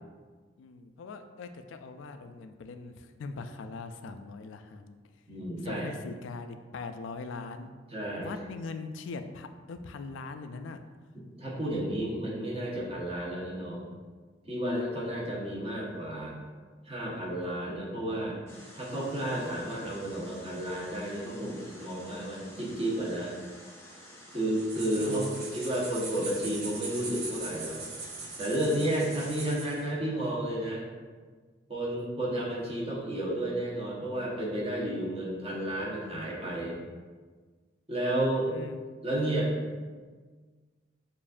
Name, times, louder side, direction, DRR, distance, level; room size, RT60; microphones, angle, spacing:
voice 1, 0.6-5.0 5.6-7.7 8.2-10.8 25.0-26.0 38.5-38.8, left 4 dB, 70° left, 8 dB, 0.3 m, -41 dB
voice 2, 5.3-5.9 7.9-8.3 11.4-13.9 14.4-16.4 16.8-18.4 18.8-23.4 24.3-27.8 28.4-30.8 31.7-36.8 37.9-38.5 39.0-39.5, right 1 dB, 30° right, -6 dB, 1.1 m, -32 dB
sound 1, 18.5-29.5, equal, 15° left, 0.7 m, -51 dB
sound 2, 24.6-29.8, right 3 dB, 55° right, 0.9 m, -41 dB
7.0 x 2.5 x 2.4 m, 1.5 s
head